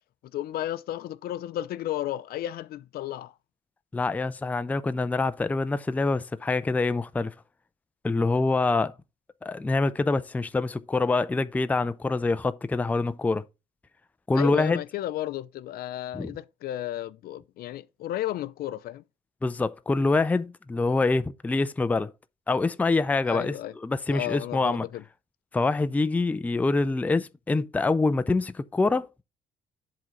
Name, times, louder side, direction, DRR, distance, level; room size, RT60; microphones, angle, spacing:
voice 1, 0.3-3.3 14.3-19.0 23.3-23.7 24.1-25.0, left 13 dB, 65° left, 0.5 m, -33 dB
voice 2, 3.9-7.3 8.0-8.9 9.4-13.4 14.3-14.8 16.1-16.3 19.4-22.1 22.5-23.6 23.8-24.8 25.5-29.1, left 3 dB, 10° left, 0.4 m, -25 dB
7.7 x 3.7 x 5.6 m
cardioid pair, 110°, 17 cm